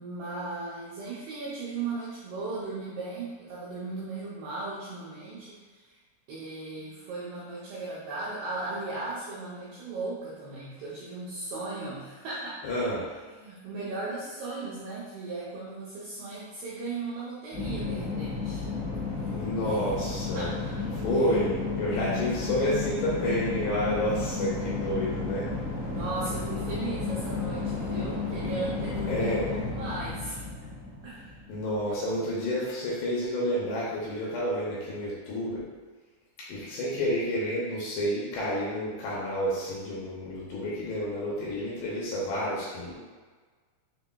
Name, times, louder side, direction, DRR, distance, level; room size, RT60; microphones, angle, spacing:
voice 1, 0.0-6.0 6.3-12.6 12.9-18.6 19.2-19.9 20.3-20.6 21.2-21.3 21.9-22.1 25.9-30.5 31.0-31.2, right 3 dB, 80° right, -7 dB, 2.3 m, -37 dB
voice 2, 12.6-13.1 19.3-20.5 21.0-25.5 29.1-29.5 31.5-35.6 36.5-43.0, equal, 75° left, -6 dB, 2.6 m, -30 dB
sound 1, 17.5-31.9, left 4 dB, 60° left, 2.8 m, -33 dB
6.8 x 3.5 x 2.2 m, 1.4 s
omnidirectional pair, 5.5 m